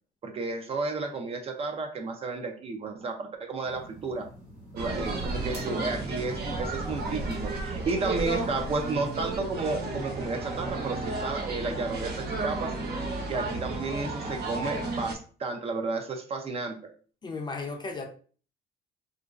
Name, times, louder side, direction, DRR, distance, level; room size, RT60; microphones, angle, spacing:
voice 1, 0.2-4.3 4.7-12.7 13.3-16.8, right 3 dB, 35° right, 4 dB, 0.5 m, -32 dB
sound 1, 3.6-9.4, right 2 dB, 90° right, 1.3 m, -48 dB
sound 2, 4.8-15.1, right 2 dB, 70° right, 0.8 m, -33 dB
voice 2, 17.2-18.1, left 3 dB, 25° left, 3 dB, 0.5 m, -35 dB
2.9 x 2.5 x 2.4 m, 0.41 s
cardioid pair, 110°, 17 cm